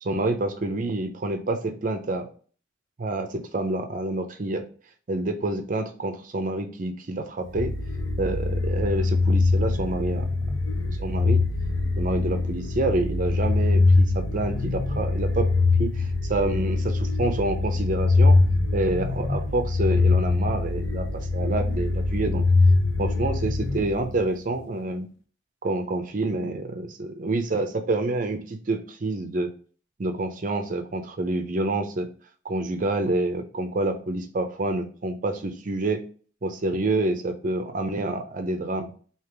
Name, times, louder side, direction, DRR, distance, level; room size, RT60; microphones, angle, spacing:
voice 1, 0.0-2.3 3.0-4.7 5.1-7.7 8.2-10.3 11.0-11.4 11.9-15.5 15.8-18.4 18.7-22.4 23.0-25.1 25.6-26.6 27.0-29.5 30.0-32.1 32.4-36.0 36.4-38.9, right 2 dB, 45° right, 7 dB, 0.5 m, -27 dB
sound 1, 7.5-24.4, left 3 dB, 85° left, 0.7 m, -23 dB
3.3 x 2.8 x 4.5 m, 0.42 s
head